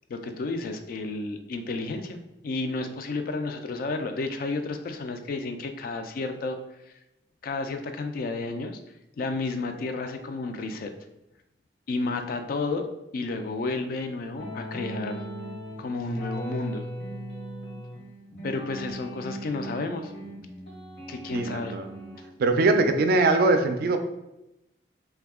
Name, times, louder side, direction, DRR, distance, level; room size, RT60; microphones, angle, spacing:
voice 1, 0.1-6.6 7.4-8.8 9.2-10.9 11.9-12.9 13.1-15.2 15.8-16.9 18.4-20.1 21.1-21.8, left 3 dB, 55° left, 7 dB, 0.3 m, -31 dB
sound 1, 14.4-22.3, right 1 dB, 75° left, 1.1 m, -38 dB
voice 2, 21.3-21.9 22.4-24.0, right 3 dB, 60° right, 7 dB, 0.3 m, -22 dB
2.7 x 2.3 x 3.5 m, 0.90 s
head